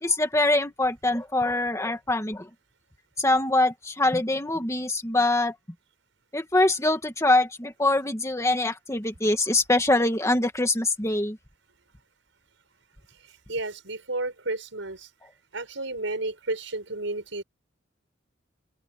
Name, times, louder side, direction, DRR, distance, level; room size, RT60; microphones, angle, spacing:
voice 1, 0.0-2.5 3.2-5.5 6.3-11.4, left 2 dB, 15° left, 2.1 m, -24 dB
voice 2, 13.5-15.1 15.5-17.4, right 2 dB, 90° right, 5.2 m, -32 dB
open air
head